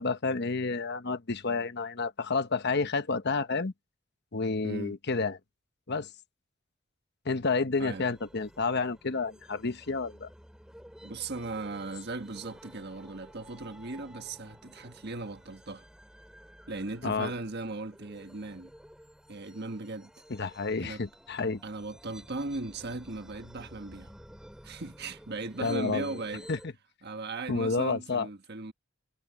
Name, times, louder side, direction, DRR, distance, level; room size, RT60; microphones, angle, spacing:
voice 1, 0.0-3.7 4.3-5.4 5.9-6.1 7.2-10.3 17.0-17.3 20.3-21.6 25.6-26.2 26.5-26.6 27.5-28.3, left 4 dB, 55° left, 1.1 m, -30 dB
voice 2, 4.6-5.0 7.8-8.1 11.0-15.8 16.7-18.7 19.3-20.1 20.8-21.0 21.6-24.1 24.6-26.5 27.0-28.7, right 3 dB, 55° right, 1.4 m, -38 dB
sound 1, 7.8-26.7, equal, 5° right, 2.9 m, -53 dB
head